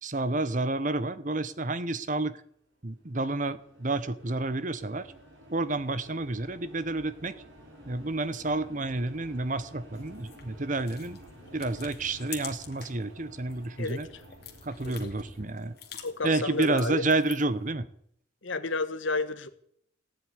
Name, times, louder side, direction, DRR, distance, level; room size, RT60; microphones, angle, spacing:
voice 1, 0.0-2.4 2.8-5.1 5.5-7.3 7.8-11.2 11.5-14.1 14.6-15.7 16.2-17.9, right 2 dB, 40° right, 0.9 m, -30 dB
sound 1, 2.9-17.4, equal, 75° right, 5.0 m, -52 dB
sound 2, 9.9-13.0 13.4-17.6, left 9 dB, 50° left, 2.5 m, -47 dB
voice 2, 13.8-14.2 14.8-15.1 16.0-17.0 18.4-19.5, left 3 dB, 70° left, 1.4 m, -31 dB
17.5 x 7.9 x 9.7 m
head